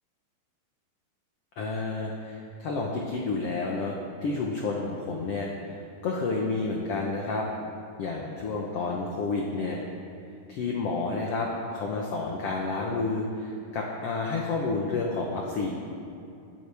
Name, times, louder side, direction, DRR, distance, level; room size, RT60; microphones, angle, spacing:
voice 1, 1.6-7.5 8.0-9.8 10.5-15.7, left 3 dB, 75° left, -1 dB, 1.4 m, -30 dB
21.0 x 9.7 x 3.5 m, 2.6 s
omnidirectional pair, 4.2 m